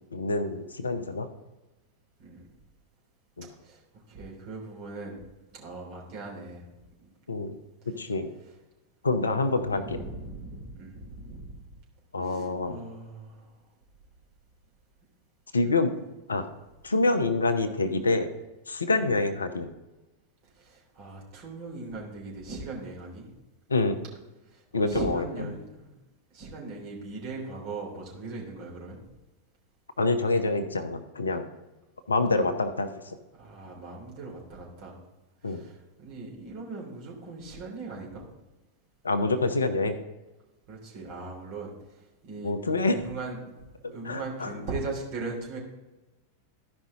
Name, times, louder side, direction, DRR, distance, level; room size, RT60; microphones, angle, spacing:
voice 1, 0.1-1.3 3.4-3.5 7.3-7.6 7.9-8.3 9.0-10.0 12.1-12.8 15.5-15.9 16.3-16.4 16.8-18.3 18.7-19.7 23.7-24.0 24.7-25.2 25.5-25.6 30.0-31.4 32.1-33.2 35.4-35.6 39.0-40.0 42.4-43.0 43.8-44.5, left 3 dB, 75° left, 8 dB, 0.8 m, -26 dB
voice 2, 3.6-5.2 5.5-6.7 7.0-7.1 8.4-8.5 9.6-11.6 12.2-13.5 15.6-15.7 16.9-17.0 19.0-19.2 20.5-23.3 24.5-25.9 26.3-29.0 33.3-35.0 35.4-38.2 40.7-42.5 42.8-43.5 43.9-45.6, right 3 dB, 45° right, -2 dB, 3.3 m, -39 dB
14.0 x 5.3 x 3.7 m, 1.1 s
figure-of-eight pair, 90°, 0 cm